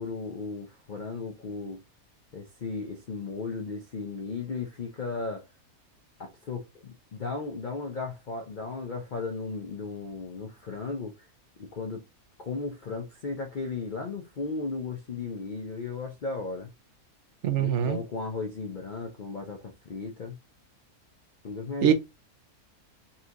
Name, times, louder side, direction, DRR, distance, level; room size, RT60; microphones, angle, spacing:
voice 1, 0.0-1.8 2.3-5.5 6.2-11.1 11.6-12.0 12.4-16.7 17.6-20.4 21.4-21.9, left 4 dB, 55° left, 0.5 m, -35 dB
voice 2, 17.4-18.0 21.8-21.9, right 10 dB, 60° right, 0.9 m, -23 dB
4.1 x 2.8 x 2.5 m
omnidirectional pair, 1.6 m